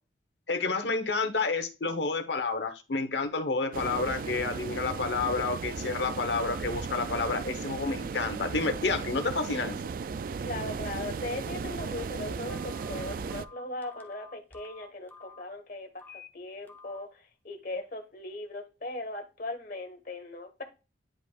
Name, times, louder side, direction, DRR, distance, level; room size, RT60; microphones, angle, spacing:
voice 1, 0.5-9.8, left 3 dB, 70° left, 1.0 m, -30 dB
sound 1, 3.7-13.5, right 5 dB, 50° right, 0.3 m, -36 dB
voice 2, 10.4-20.6, left 2 dB, 50° left, 1.4 m, -39 dB
Telephone, 12.5-15.4 16.0-16.3 16.7-17.0, left 4 dB, 10° left, 0.8 m, -50 dB
10.0 x 5.1 x 2.4 m
head